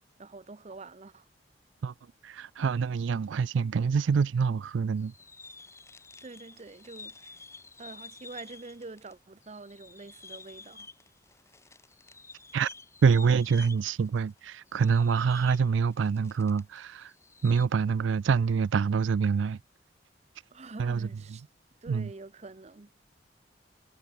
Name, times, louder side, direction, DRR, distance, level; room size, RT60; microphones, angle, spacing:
voice 1, 0.2-1.3 6.2-7.4 7.8-10.9 20.5-21.4 21.8-22.9, right 3 dB, 35° right, 0.6 m, -46 dB
voice 2, 2.2-5.1 12.5-12.7 13.0-17.1 17.4-19.6 20.8-21.1 21.9-22.1, right 5 dB, 90° right, 0.4 m, -26 dB
sound 1, 5.0-9.1 9.4-16.8 17.0-17.7, left 4 dB, 15° left, 1.2 m, -50 dB
head